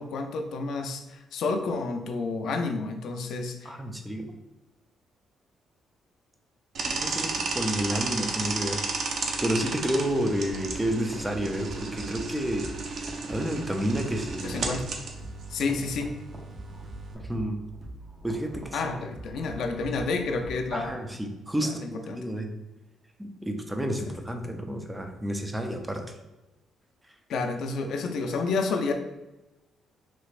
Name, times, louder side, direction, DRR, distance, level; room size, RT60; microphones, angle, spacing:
voice 1, 0.0-3.7 14.4-14.8 15.5-16.1 18.7-21.0 21.6-22.2 27.3-28.9, left 3 dB, 75° left, 4 dB, 0.4 m, -30 dB
voice 2, 3.6-4.3 6.9-8.8 9.4-14.6 17.2-17.6 18.2-18.8 20.7-22.5 23.2-26.0, equal, 10° right, 4 dB, 0.5 m, -30 dB
sound 1, 6.7-17.1, right 3 dB, 60° right, 0.5 m, -33 dB
sound 2, 10.5-20.9, right 1 dB, 45° right, 0.8 m, -44 dB
3.2 x 3.0 x 2.5 m, 1.0 s
cardioid pair, 90°, 0 cm